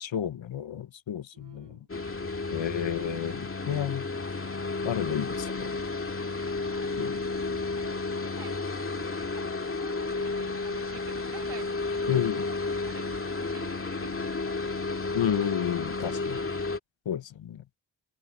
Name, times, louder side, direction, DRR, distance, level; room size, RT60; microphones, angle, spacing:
voice 1, 0.0-1.8 2.5-4.1 4.8-5.7 7.0-7.2 12.1-12.4 15.1-16.5 17.0-17.6, left 9 dB, 85° left, 1.2 m, -31 dB
voice 2, 1.3-1.9 6.5-7.1 7.8-12.6 12.9-14.6, right 5 dB, 65° right, 4.0 m, -49 dB
sound 1, 1.9-16.8, left 3 dB, 30° left, 2.3 m, -32 dB
open air
wide cardioid pair, 90°, 44 cm